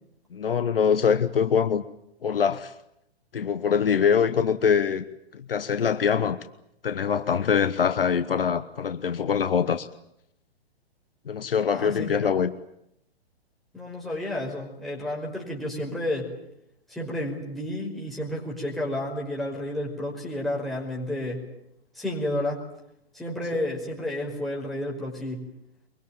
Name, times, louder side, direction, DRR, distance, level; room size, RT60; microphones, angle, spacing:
voice 1, 0.3-1.8 2.2-2.7 3.3-5.0 5.3-6.4 6.8-9.9 11.3-12.5, left 7 dB, 60° left, 1.2 m, -23 dB
voice 2, 11.6-12.3 13.7-16.3 16.9-21.4 21.9-22.6 23.1-25.5, left 1 dB, ahead, 5.3 m, -31 dB
23.5 x 23.0 x 9.0 m
figure-of-eight pair, 120°, 32 cm